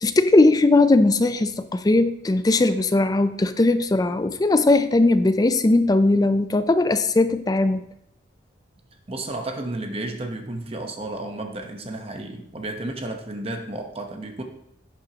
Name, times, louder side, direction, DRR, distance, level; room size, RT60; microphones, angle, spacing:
voice 1, 0.0-7.8, left 2 dB, 20° left, 11 dB, 0.4 m, -19 dB
voice 2, 9.1-14.4, right 2 dB, 30° right, 4 dB, 0.9 m, -32 dB
11.0 x 7.7 x 2.9 m, 0.79 s
head